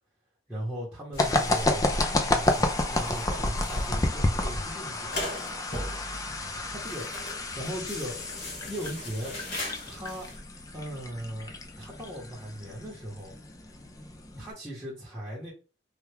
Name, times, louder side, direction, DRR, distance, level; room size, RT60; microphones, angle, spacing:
voice 1, 0.5-5.2 6.6-8.2 8.6-9.4 9.9-10.3 10.7-13.3 14.4-15.5, equal, 5° right, -8 dB, 0.9 m, -38 dB
sound 1, 1.1-10.4, left 1 dB, 60° left, 1.4 m, -39 dB
sound 2, 1.2-14.5, left 2 dB, 15° left, 0.3 m, -31 dB
3.3 x 2.3 x 3.3 m, 0.34 s
head